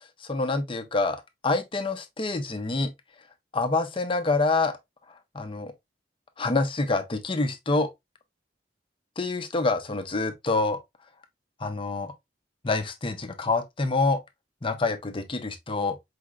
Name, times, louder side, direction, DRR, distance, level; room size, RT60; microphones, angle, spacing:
voice 1, 0.2-2.9 3.5-4.7 5.3-5.7 6.4-7.9 9.2-10.8 11.6-12.1 12.6-14.2 14.6-16.0, left 3 dB, 30° left, 0.7 m, -26 dB
4.9 x 3.2 x 2.4 m
head